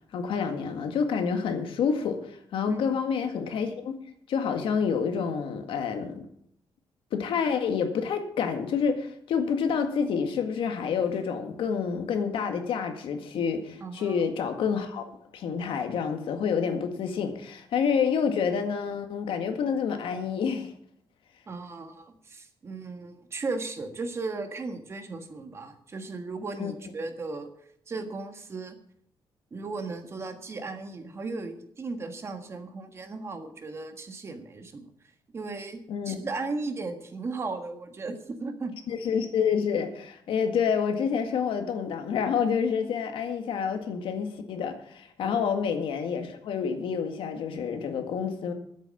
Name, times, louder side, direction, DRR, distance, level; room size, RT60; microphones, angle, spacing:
voice 1, 0.1-3.9 4.3-6.2 7.1-15.0 15.3-20.7 26.6-26.7 35.9-36.2 38.9-48.5, left 6 dB, 80° left, 6 dB, 1.9 m, -28 dB
voice 2, 13.8-14.2 21.5-27.5 27.9-28.8 29.5-34.9 35.3-38.7 45.2-45.4, right 3 dB, 30° right, 6 dB, 1.5 m, -36 dB
11.0 x 8.4 x 8.4 m, 0.68 s
wide cardioid pair, 165°, 9 cm